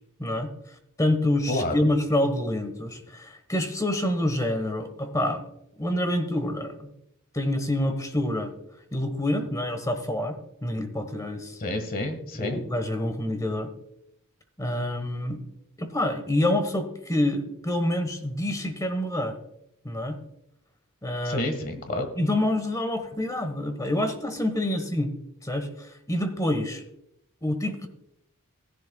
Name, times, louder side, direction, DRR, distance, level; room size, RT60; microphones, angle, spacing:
voice 1, 1.0-5.5 5.8-6.9 7.3-8.5 8.9-11.6 12.3-13.7 14.6-15.4 15.8-19.4 19.8-20.2 21.0-21.5 22.2-25.1 25.4-26.8 27.4-27.9, left 1 dB, 15° left, 7 dB, 1.1 m, -27 dB
voice 2, 11.6-12.6 21.2-22.1, left 1 dB, 40° left, 7 dB, 1.5 m, -29 dB
16.0 x 11.0 x 2.3 m, 0.79 s
head